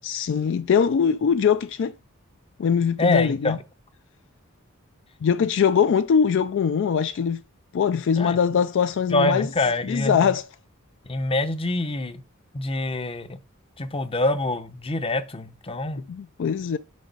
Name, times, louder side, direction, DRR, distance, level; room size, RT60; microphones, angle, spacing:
voice 1, 0.0-1.9 2.6-3.6 5.2-7.4 7.7-9.5 9.8-10.4 16.1-16.8, left 7 dB, 60° left, 0.4 m, -22 dB
voice 2, 3.0-3.6 8.1-8.4 9.1-10.3 11.0-12.2 12.5-13.4 13.8-16.0, left 2 dB, 25° left, 0.7 m, -25 dB
6.4 x 5.1 x 5.2 m
head